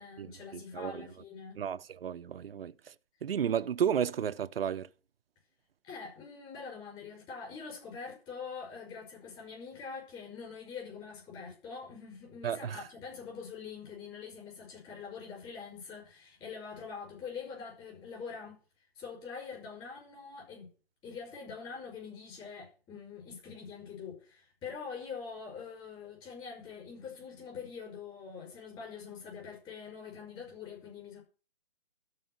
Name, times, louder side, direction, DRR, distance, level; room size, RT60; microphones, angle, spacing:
voice 1, 0.0-1.6 5.8-18.6 19.0-20.7 21.0-31.2, left 5 dB, 15° left, 5.7 m, -44 dB
voice 2, 1.6-2.7 3.2-4.9 12.4-12.8, right 8 dB, 70° right, 0.9 m, -32 dB
13.0 x 5.0 x 8.1 m
hypercardioid pair, 160°, 31 cm